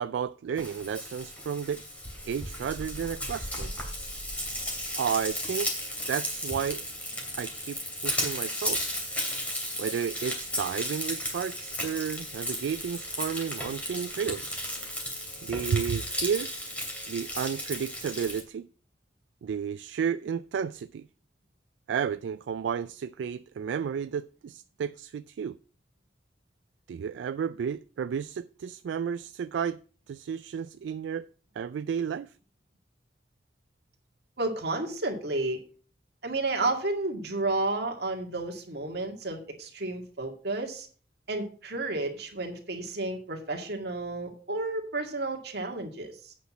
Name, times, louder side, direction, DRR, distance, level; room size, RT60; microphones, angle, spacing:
voice 1, 0.0-1.8 2.2-3.7 5.0-5.7 6.1-6.8 7.3-8.8 9.8-14.5 15.4-16.5 17.1-18.7 19.4-21.1 21.9-25.6 26.9-29.8 30.1-31.3 31.6-32.3, right 7 dB, 80° right, 0.3 m, -32 dB
Frying (food), 0.6-18.4, equal, 10° left, 2.6 m, -34 dB
voice 2, 34.4-35.6 36.2-40.9 41.3-46.3, right 2 dB, 60° right, 2.1 m, -31 dB
8.4 x 6.0 x 6.1 m
head